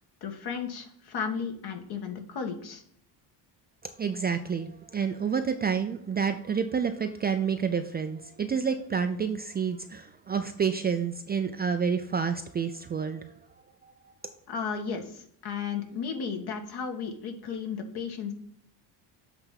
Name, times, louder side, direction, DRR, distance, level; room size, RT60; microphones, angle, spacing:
voice 1, 0.2-2.8 14.5-18.3, left 6 dB, 60° left, 5 dB, 1.6 m, -34 dB
voice 2, 3.8-13.3 13.8-14.3, right 6 dB, 25° right, 7 dB, 0.3 m, -29 dB
7.9 x 3.4 x 5.7 m, 0.66 s
cardioid pair, 130°, 43 cm